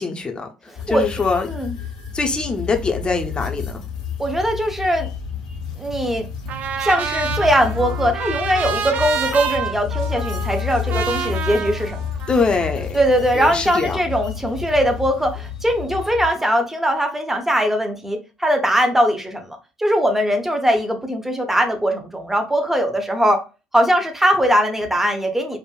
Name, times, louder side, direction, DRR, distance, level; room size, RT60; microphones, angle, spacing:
voice 1, 0.0-0.5 0.9-1.5 2.1-3.8 12.3-13.0 13.3-14.0, left 4 dB, 25° left, 0.9 m, -22 dB
voice 2, 0.7-1.0 1.5-1.8 4.2-5.1 5.8-6.3 6.8-12.0 12.9-23.4 23.7-25.6, equal, 5° right, 1.0 m, -20 dB
sound 1, 0.8-16.3, left 7 dB, 70° left, 0.9 m, -30 dB
Trumpet, 6.5-12.7, right 7 dB, 45° right, 0.7 m, -28 dB
4.7 x 2.5 x 2.4 m
figure-of-eight pair, 55°, 4 cm